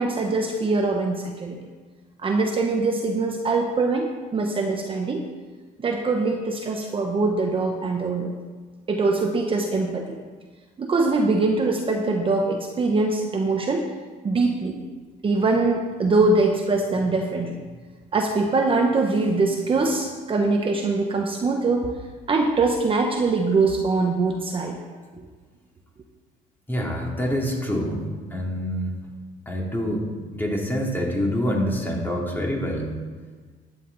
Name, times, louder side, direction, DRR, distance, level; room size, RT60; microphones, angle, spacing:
voice 1, 0.0-1.6 2.2-5.3 5.8-8.3 8.9-10.2 10.8-13.9 14.2-14.7 15.2-17.6 18.1-21.9 22.3-24.8, right 3 dB, 30° right, 2 dB, 1.1 m, -23 dB
voice 2, 26.7-28.0 28.3-29.0 29.5-30.0 30.3-32.9, equal, 10° left, -2 dB, 2.9 m, -26 dB
12.5 x 9.9 x 4.1 m, 1.4 s
cardioid pair, 110°, 17 cm